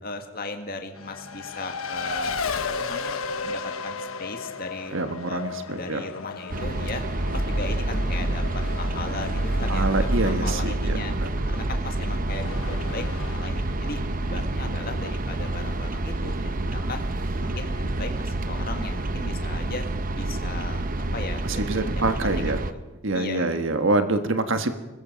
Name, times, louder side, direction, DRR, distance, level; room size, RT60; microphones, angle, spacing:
voice 1, 0.0-2.4 2.7-3.2 3.4-5.0 5.3-7.0 7.3-11.1 11.5-13.1 13.3-17.0 17.4-19.9 20.1-22.8 23.1-23.9, left 3 dB, 45° left, 5 dB, 2.1 m, -37 dB
Race car auto racing, 0.9-20.1, left 4 dB, 75° left, 1.2 m, -37 dB
voice 2, 4.9-6.1 9.7-11.3 21.4-22.6 23.0-24.7, right 2 dB, 60° right, 8 dB, 1.6 m, -26 dB
sound 1, 6.5-22.7, right 2 dB, 40° right, 0.8 m, -28 dB
26.5 x 21.0 x 5.3 m, 1.1 s
head